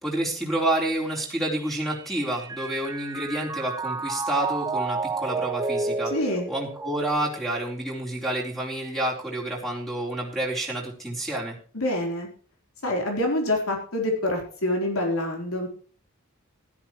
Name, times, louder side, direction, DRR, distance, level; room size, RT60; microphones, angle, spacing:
voice 1, 0.0-6.1 6.5-11.6, right 1 dB, ahead, -2 dB, 4.0 m, -29 dB
Mallet percussion, 1.2-7.6, right 3 dB, 15° right, 0.6 m, -32 dB
voice 2, 6.1-6.5 11.7-12.3 12.8-15.7, left 1 dB, 80° left, 1 dB, 4.0 m, -26 dB
16.0 x 13.0 x 3.1 m, 0.43 s
head